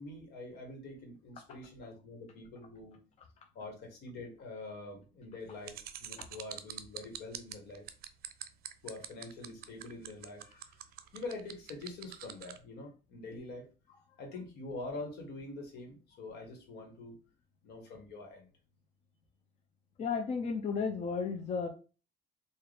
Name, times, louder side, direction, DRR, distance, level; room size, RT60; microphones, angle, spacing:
voice 1, 0.0-3.0 3.5-7.8 8.8-10.8 11.1-13.7 14.2-17.2 17.6-18.5, left 2 dB, 75° left, 2 dB, 1.5 m, -45 dB
sound 1, 5.6-12.6, right 12 dB, 65° right, 0.5 m, -44 dB
voice 2, 20.0-21.7, left 5 dB, 40° left, 4 dB, 0.5 m, -33 dB
3.9 x 2.5 x 3.3 m, 0.34 s
cardioid pair, 110°, 17 cm